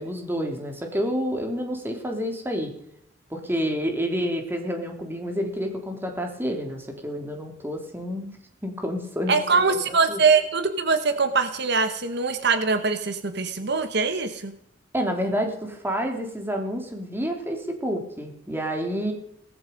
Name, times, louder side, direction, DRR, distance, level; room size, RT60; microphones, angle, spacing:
voice 1, 0.0-2.7 3.3-8.3 8.6-9.4 9.7-10.2 14.9-19.1, equal, 10° right, 3 dB, 3.3 m, -29 dB
voice 2, 9.3-14.5, right 4 dB, 60° right, 9 dB, 1.4 m, -23 dB
18.5 x 14.5 x 5.4 m, 0.75 s
head